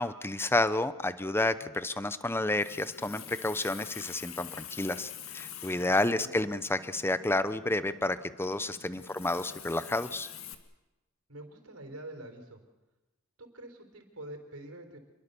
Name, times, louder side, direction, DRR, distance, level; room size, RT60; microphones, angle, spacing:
voice 1, 0.0-10.3, left 2 dB, 10° left, 13 dB, 0.7 m, -30 dB
Water tap faucet, 2.4-10.5, left 9 dB, 65° left, 1.8 m, -47 dB
voice 2, 5.7-6.3 9.1-9.2 11.3-12.6 13.4-15.0, right 1 dB, 75° right, 5 dB, 4.2 m, -46 dB
27.0 x 22.0 x 6.9 m, 1.1 s
head